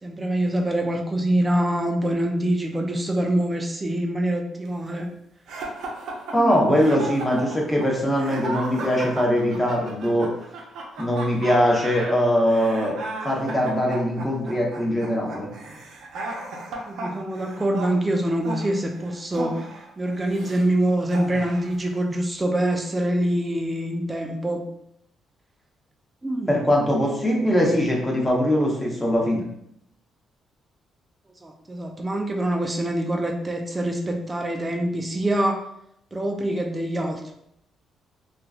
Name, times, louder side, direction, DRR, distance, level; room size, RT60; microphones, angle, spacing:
voice 1, 0.0-5.1 6.4-6.8 16.9-19.7 20.0-24.6 26.2-26.6 31.4-35.7 36.1-37.3, right 1 dB, 20° right, 2 dB, 0.4 m, -25 dB
sound 1, 5.5-20.6 21.1-21.8, right 2 dB, 80° right, 0.6 m, -35 dB
voice 2, 6.3-10.3 11.0-12.9 13.2-15.5 26.5-29.5, equal, 15° left, -2 dB, 0.8 m, -21 dB
3.0 x 2.4 x 2.3 m, 0.74 s
cardioid pair, 90°, 0 cm